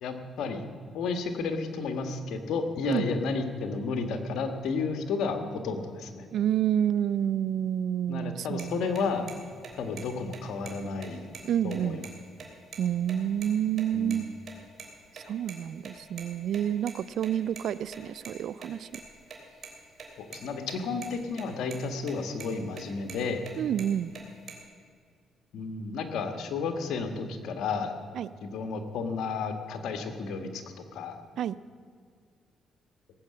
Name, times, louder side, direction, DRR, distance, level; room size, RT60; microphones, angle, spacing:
voice 1, 0.0-0.6 0.9-6.3 8.1-9.3 9.8-11.3 11.6-12.1 13.9-14.2 20.2-23.5 25.5-28.0 28.4-30.6 30.9-31.2, left 4 dB, 75° left, 7 dB, 1.6 m, -32 dB
voice 2, 6.3-9.0 11.4-12.0 12.8-14.2 15.3-18.9 23.6-24.1 28.2-28.3 31.4-31.6, right 10 dB, 70° right, 18 dB, 0.4 m, -29 dB
sound 1, 8.6-8.7 9.0-9.1 9.3-9.4 9.6-10.0 10.3-10.4 10.7-10.8 11.0-12.1 12.4-12.5 12.7-12.8 13.1-13.5 13.8-14.2 14.5-15.5 15.8-18.3 18.6-20.4 20.7-20.8 21.0-21.4 21.7-22.1 22.4-23.5 23.8-24.5, right 6 dB, 50° right, 3.2 m, -43 dB
18.0 x 7.7 x 8.5 m, 2.1 s
cardioid pair, 90°, 0 cm